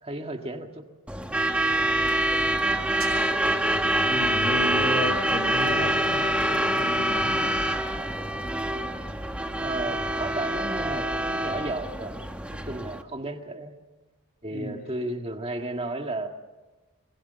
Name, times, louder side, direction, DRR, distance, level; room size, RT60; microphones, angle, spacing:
voice 1, 0.0-0.9 9.6-12.2 12.5-13.8 14.4-16.3, right 2 dB, 25° right, 5 dB, 1.8 m, -33 dB
Truck / Alarm, 1.1-13.0, right 1 dB, 5° right, 1.0 m, -25 dB
sound 1, 3.0-5.0, right 4 dB, 80° right, 7.9 m, -45 dB
voice 2, 4.0-7.6 14.5-14.8, left 1 dB, 40° left, 6 dB, 4.3 m, -33 dB
25.0 x 21.5 x 6.9 m, 1.2 s
head